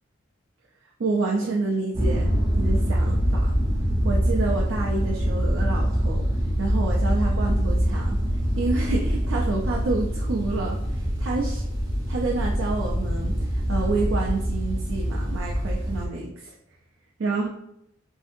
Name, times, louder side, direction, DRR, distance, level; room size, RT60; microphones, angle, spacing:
voice 1, 1.0-2.3 2.6-3.5 4.0-6.3 6.6-8.2 8.6-11.6 12.1-16.6 17.2-17.5, right 3 dB, 75° right, -1 dB, 0.4 m, -28 dB
sound 1, 1.9-16.1, equal, 20° right, 0.6 m, -24 dB
2.7 x 2.5 x 2.5 m, 0.78 s
head